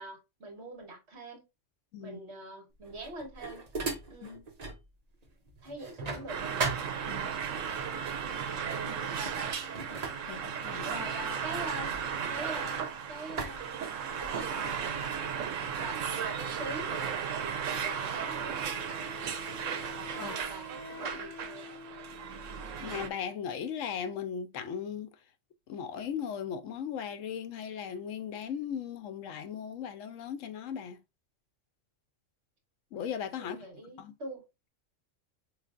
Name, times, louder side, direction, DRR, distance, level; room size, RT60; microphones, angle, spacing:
voice 1, 0.0-1.4 2.0-3.6 4.1-4.5 5.6-6.6 8.8-9.2 10.3-10.4 10.7-12.0 12.3-15.0 15.8-18.6 20.1-21.7 33.4-34.4, right 1 dB, 60° right, 1.5 m, -44 dB
sound 1, 2.8-4.9 5.2-7.5 8.4-8.6 9.0-12.8 13.4-14.5, right 4 dB, 40° right, 0.7 m, -39 dB
sound 2, 6.3-23.1, right 7 dB, 80° right, 1.0 m, -35 dB
voice 2, 10.3-11.1 20.2-20.3 22.8-25.1 25.7-31.0 32.9-33.6 34.0-34.1, left 8 dB, 80° left, 1.0 m, -37 dB
Wind instrument woodwind instrument, 18.3-23.1, left 4 dB, 20° left, 0.4 m, -48 dB
4.8 x 3.2 x 2.4 m
omnidirectional pair, 1.3 m